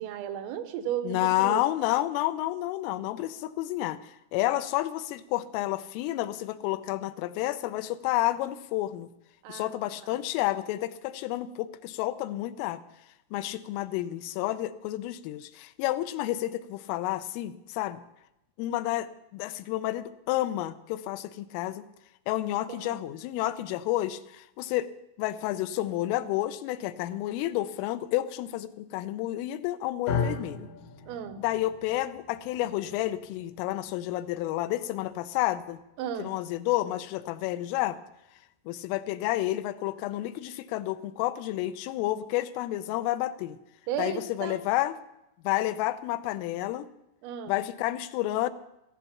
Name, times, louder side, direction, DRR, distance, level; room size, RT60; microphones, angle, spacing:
voice 1, 0.0-1.6 9.4-9.7 10.1-10.2 22.7-23.0 31.1-31.4 36.0-36.3 43.9-44.6 47.2-47.5, right 9 dB, 85° right, 9 dB, 3.7 m, -34 dB
voice 2, 1.0-4.0 4.3-9.1 9.5-12.8 13.3-18.0 18.6-21.9 22.3-24.9 25.2-30.7 31.4-35.8 36.2-38.0 38.7-43.6 44.0-45.0 45.4-46.9 47.5-48.5, left 15 dB, 85° left, 12 dB, 3.3 m, -30 dB
sound 1, 30.1-38.3, left 5 dB, 70° left, 2.1 m, -38 dB
15.0 x 14.5 x 5.8 m, 0.85 s
omnidirectional pair, 5.8 m